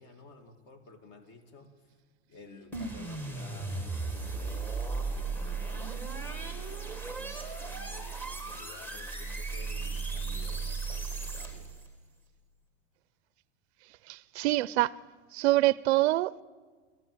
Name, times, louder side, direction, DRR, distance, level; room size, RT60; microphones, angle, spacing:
voice 1, 0.0-1.8 2.3-11.7, left 2 dB, 35° left, 2.4 m, -53 dB
sound 1, 2.7-11.8, right 4 dB, 5° left, 1.6 m, -36 dB
Explosion, 2.7-6.7 7.1-7.2, right 7 dB, 15° right, 1.4 m, -53 dB
voice 2, 14.1-14.9 15.3-16.4, right 18 dB, 75° right, 0.6 m, -25 dB
26.0 x 14.5 x 7.9 m
supercardioid pair, 155°, 33 cm